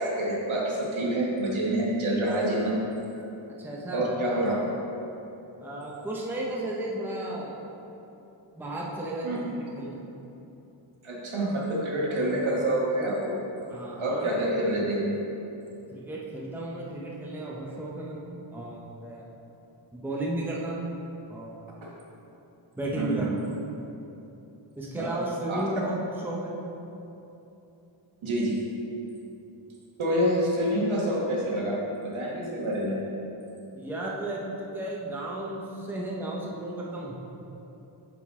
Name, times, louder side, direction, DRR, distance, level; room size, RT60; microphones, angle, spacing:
voice 1, 0.0-2.8 3.9-4.5 9.2-9.4 11.0-13.4 14.0-15.2 21.8-21.9 23.0-23.3 24.9-25.1 25.5-25.6 28.2-28.6 30.0-33.0, right 1 dB, 80° right, -4 dB, 1.4 m, -27 dB
voice 2, 3.6-4.1 5.6-7.6 8.6-10.0 13.7-14.3 15.9-19.2 19.9-20.8 21.3-21.7 22.8-23.4 24.8-26.0 26.2-26.6 33.7-37.1, right 1 dB, 5° right, -4 dB, 0.6 m, -34 dB
9.1 x 3.8 x 3.6 m, 3.0 s
wide cardioid pair, 175°, 48 cm